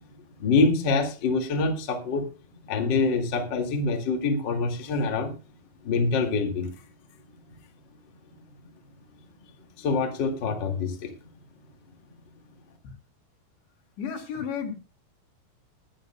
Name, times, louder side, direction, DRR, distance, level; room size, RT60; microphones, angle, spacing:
voice 1, 0.4-2.3 2.7-5.3 5.8-6.7 9.8-11.1, left 4 dB, 40° left, 3 dB, 1.7 m, -25 dB
voice 2, 14.0-14.8, left 7 dB, 75° left, 3 dB, 4.6 m, -32 dB
21.0 x 11.0 x 2.2 m, 0.32 s
omnidirectional pair, 5.2 m